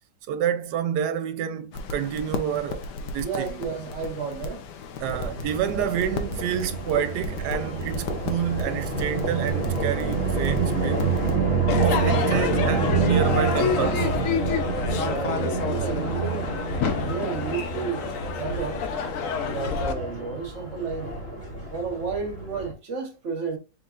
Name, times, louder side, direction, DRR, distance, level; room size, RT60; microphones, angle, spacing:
voice 1, 0.3-3.6 5.0-11.1 11.8-14.1, right 9 dB, 75° right, 1.1 m, -28 dB
sound 1, 1.7-11.4, left 3 dB, 75° left, 1.4 m, -35 dB
voice 2, 3.2-4.7 5.7-6.0 14.9-16.5 17.0-18.1 18.4-18.9 19.4-21.1 21.7-23.6, right 5 dB, 45° right, 1.3 m, -32 dB
sound 2, 5.0-22.7, right 5 dB, 30° right, 1.9 m, -28 dB
Crowd / Fireworks, 11.7-19.9, left 6 dB, 60° left, 1.0 m, -28 dB
4.6 x 4.6 x 2.5 m
omnidirectional pair, 1.9 m